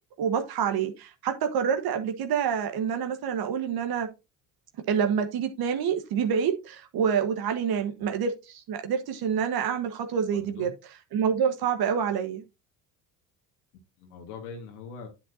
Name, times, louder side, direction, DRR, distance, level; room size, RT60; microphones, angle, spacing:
voice 1, 0.2-4.1 4.9-10.7 11.1-12.4, right 7 dB, 55° right, 1.4 m, -27 dB
voice 2, 7.7-8.1 10.3-10.7 13.7-15.1, left 5 dB, 85° left, 1.8 m, -43 dB
8.7 x 7.9 x 2.7 m
hypercardioid pair, 75°, 44 cm